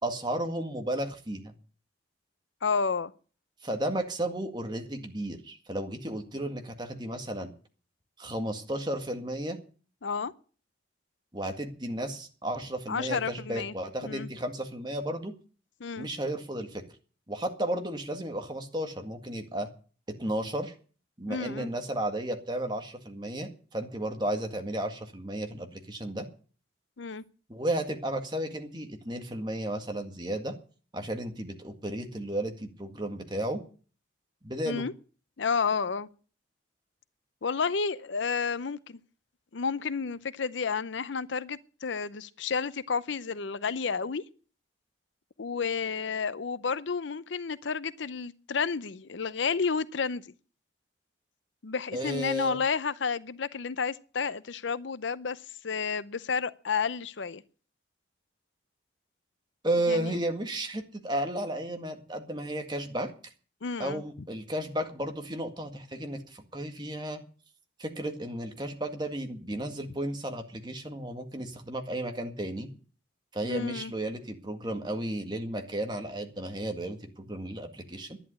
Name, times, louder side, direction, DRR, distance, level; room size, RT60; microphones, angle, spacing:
voice 1, 0.0-1.5 3.6-7.5 8.2-9.6 11.3-15.3 16.0-16.8 17.3-19.7 20.2-20.7 21.2-26.2 27.5-30.5 30.9-33.6 34.4-34.8 51.9-52.6 59.6-63.1 63.8-67.2 67.8-72.7 73.3-78.2, right 1 dB, 25° right, 1.9 m, -33 dB
voice 2, 2.6-3.1 10.0-10.3 12.9-13.7 14.0-14.3 15.8-16.1 21.3-21.7 27.0-27.2 34.7-34.9 35.4-36.1 37.4-39.0 39.5-44.2 45.4-50.2 51.6-57.4 59.9-60.2 63.6-64.0 73.4-73.9, left 5 dB, 70° left, 0.6 m, -31 dB
11.0 x 11.0 x 8.2 m
head